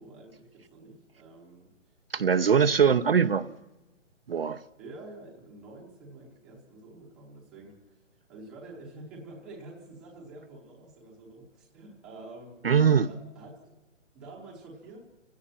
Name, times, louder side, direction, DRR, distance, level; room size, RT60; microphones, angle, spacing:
voice 1, 0.0-2.9 4.8-8.0 8.3-12.7 13.0-13.6 14.1-15.1, right 2 dB, ahead, 0.8 m, -48 dB
voice 2, 2.1-3.5 4.3-4.6 12.6-13.1, right 7 dB, 50° right, 0.6 m, -22 dB
29.5 x 17.0 x 5.8 m
hypercardioid pair, 175°, 38 cm